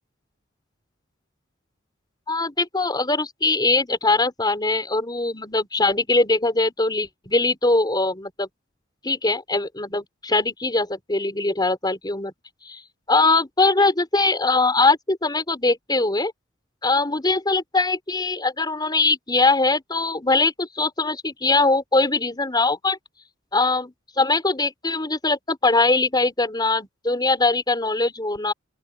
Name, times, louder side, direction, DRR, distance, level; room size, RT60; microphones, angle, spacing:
voice 1, 2.3-8.5 9.0-12.3 12.7-12.8 13.1-16.3 16.8-23.0 23.5-28.5, left 3 dB, 20° left, 4.3 m, -21 dB
open air
head